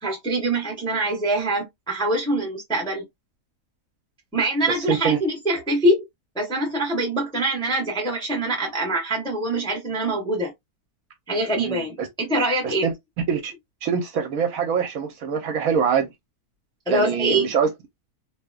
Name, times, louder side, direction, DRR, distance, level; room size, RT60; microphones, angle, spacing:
voice 1, 0.0-3.0 4.3-6.0 6.3-10.5 11.3-12.9 16.9-17.5, right 1 dB, 5° left, 0.5 m, -24 dB
voice 2, 4.9-5.2 11.6-12.1 12.6-12.9 13.3-13.5 13.8-16.1 16.9-17.7, right 7 dB, 65° right, 1.0 m, -24 dB
2.9 x 2.1 x 2.3 m
omnidirectional pair, 1.7 m